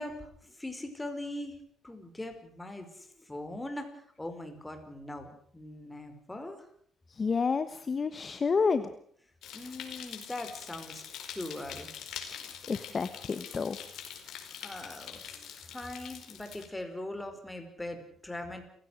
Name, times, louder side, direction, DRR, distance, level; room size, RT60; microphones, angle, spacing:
voice 1, 0.0-1.6 1.8-3.9 4.2-6.6 9.5-11.9 14.6-18.7, left 1 dB, 10° left, 6 dB, 5.0 m, -41 dB
voice 2, 7.1-8.9 12.3-13.8, left 5 dB, 35° left, 11 dB, 1.1 m, -30 dB
sound 1, 9.4-16.7, left 9 dB, 75° left, 4.7 m, -44 dB
29.5 x 16.5 x 6.5 m, 0.63 s
cardioid pair, 115°, 0 cm